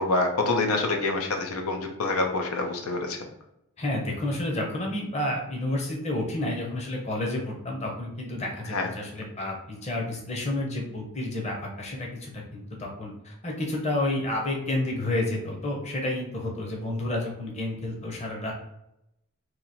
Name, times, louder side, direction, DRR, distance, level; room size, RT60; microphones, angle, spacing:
voice 1, 0.0-3.3 8.7-8.9, left 2 dB, 90° left, 3 dB, 0.7 m, -26 dB
voice 2, 3.8-18.5, left 1 dB, 30° left, 0 dB, 0.8 m, -30 dB
3.0 x 2.8 x 4.1 m, 0.84 s
head